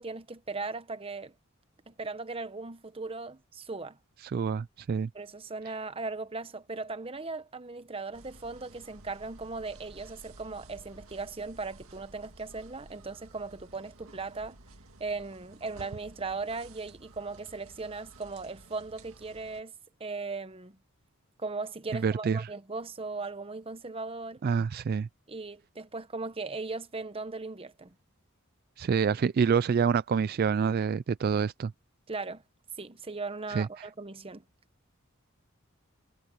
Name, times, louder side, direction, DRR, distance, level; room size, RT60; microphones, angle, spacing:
voice 1, 0.0-1.3 1.9-4.0 5.1-14.6 15.0-19.7 20.0-20.8 21.4-24.4 25.3-27.9 32.1-32.4 32.8-34.4, right 3 dB, 25° right, 0.9 m, -38 dB
voice 2, 4.3-5.1 22.0-22.5 24.4-25.1 28.8-31.7 33.5-33.9, right 6 dB, 45° right, 0.3 m, -27 dB
sound 1, 8.1-19.6, right 2 dB, 80° right, 2.1 m, -53 dB
head